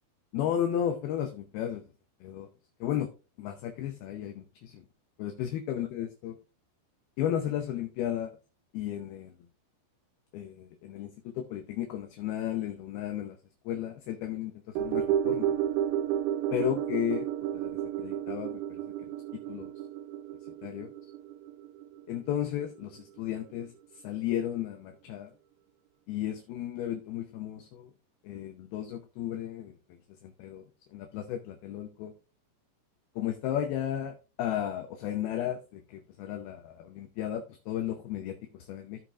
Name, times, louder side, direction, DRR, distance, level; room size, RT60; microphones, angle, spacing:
voice 1, 0.3-1.8 2.2-2.5 2.8-3.1 3.4-4.8 5.2-6.4 7.2-8.3 8.7-9.3 10.3-13.4 13.7-15.5 16.5-17.7 18.0-19.7 20.6-20.9 22.1-23.7 24.0-25.3 26.1-27.9 28.2-29.7 30.2-30.6 30.9-32.1 33.2-39.0, left 10 dB, 75° left, 5 dB, 2.4 m, -34 dB
sound 1, 14.8-23.2 23.5-23.6, right 11 dB, 90° right, 3.0 m, -32 dB
15.0 x 5.9 x 2.4 m, 0.32 s
omnidirectional pair, 5.2 m